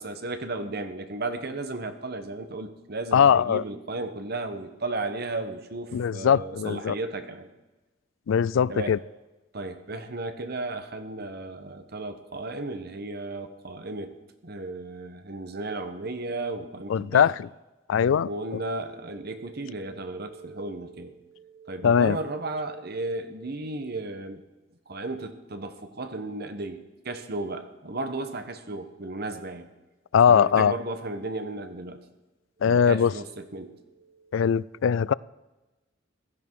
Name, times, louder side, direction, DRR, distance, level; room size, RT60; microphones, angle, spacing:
voice 1, 0.0-7.5 8.7-9.0 9.5-14.1 14.4-17.3 18.1-24.4 24.9-29.7 30.3-32.0 32.6-34.5, right 2 dB, 55° right, 1.3 m, -34 dB
voice 2, 3.1-3.6 5.9-6.9 8.3-9.0 16.9-17.3 17.9-18.3 21.8-22.2 30.1-30.7 32.6-33.1 34.3-35.1, left 7 dB, 90° left, 0.4 m, -20 dB
16.0 x 13.5 x 4.8 m
head